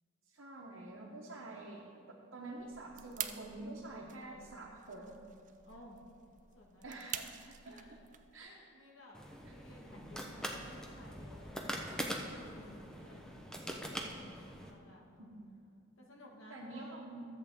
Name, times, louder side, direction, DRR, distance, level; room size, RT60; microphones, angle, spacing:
voice 1, 0.3-1.8 2.3-5.2 6.8-7.3 7.6-8.0 8.3-8.5 15.2-15.5 16.5-17.2, right 2 dB, 75° right, -4 dB, 1.1 m, -47 dB
voice 2, 1.2-1.8 5.6-6.0 6.5-7.1 7.6-8.1 8.4-13.2 13.7-14.1 14.6-15.3 16.0-17.0, left 1 dB, 85° left, -2 dB, 1.7 m, -57 dB
sound 1, 2.6-8.4, right 10 dB, 40° right, 0.4 m, -47 dB
sound 2, 9.1-14.7, equal, 5° left, 0.7 m, -43 dB
13.5 x 7.8 x 3.6 m, 2.5 s
head